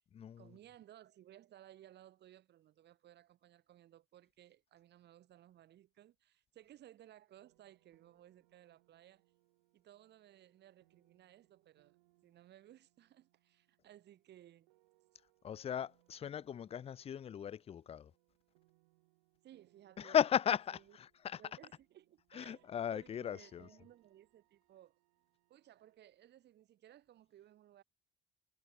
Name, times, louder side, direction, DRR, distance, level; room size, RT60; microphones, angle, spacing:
voice 1, 0.4-9.2 9.7-12.0 12.2-14.7 19.4-20.2 20.7-21.0 21.4-25.0 25.5-27.8, right 12 dB, 55° right, 1.9 m, -60 dB
sound 1, 7.3-26.0, right 24 dB, 85° right, 2.4 m, -76 dB
voice 2, 15.4-18.1 20.0-21.4 22.3-23.7, left 9 dB, 30° left, 0.4 m, -36 dB
hypercardioid pair, 70°, 20 cm